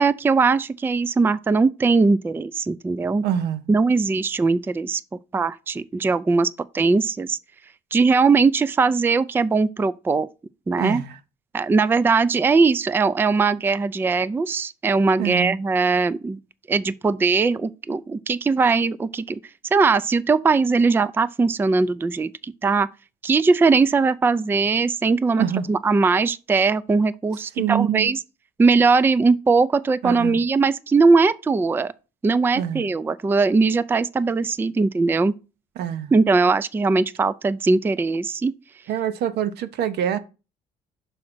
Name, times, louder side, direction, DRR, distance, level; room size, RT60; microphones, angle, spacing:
voice 1, 0.0-3.3 3.7-5.0 5.3-6.5 6.7-7.4 7.9-10.3 10.7-11.0 11.5-16.4 16.7-19.4 19.7-22.9 23.2-28.2 28.6-31.9 32.2-35.3 36.1-38.5, right 4 dB, 15° right, 0.3 m, -20 dB
voice 2, 3.2-3.7 10.8-11.2 15.2-15.5 25.4-25.7 27.6-28.1 30.0-30.4 32.5-32.9 35.8-36.1 38.9-40.2, right 9 dB, 75° right, 0.8 m, -25 dB
6.3 x 3.8 x 6.0 m
cardioid pair, 110°, 17 cm